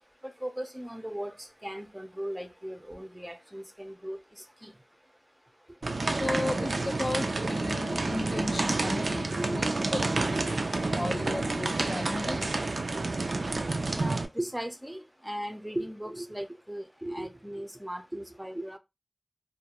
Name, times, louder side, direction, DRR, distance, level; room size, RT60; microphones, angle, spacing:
voice 1, 0.2-4.2 4.6-4.7 5.9-6.2 6.5-6.9 8.3-8.4 9.0-9.1 9.3-10.5 13.9-15.0 15.2-18.8, right 1 dB, 10° right, 0.5 m, -38 dB
sound 1, 5.8-14.3, right 3 dB, 75° right, 0.3 m, -29 dB
voice 2, 6.2-10.0 10.4-10.5 10.9-12.5, left 2 dB, 55° left, 0.3 m, -35 dB
2.4 x 2.1 x 2.8 m
wide cardioid pair, 60°, 0 cm